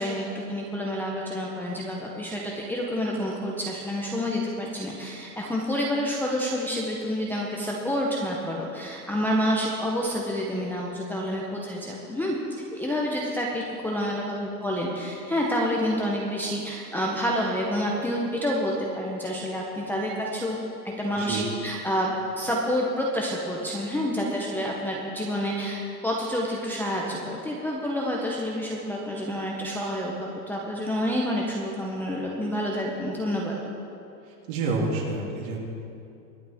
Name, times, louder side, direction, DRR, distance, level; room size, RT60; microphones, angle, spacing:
voice 1, 0.0-20.6 20.8-33.6, equal, 5° left, -4 dB, 0.7 m, -28 dB
voice 2, 21.1-21.5 34.3-35.6, right 3 dB, 50° right, -2 dB, 3.0 m, -29 dB
23.0 x 8.6 x 3.5 m, 2.7 s
hypercardioid pair, 140°, 50 cm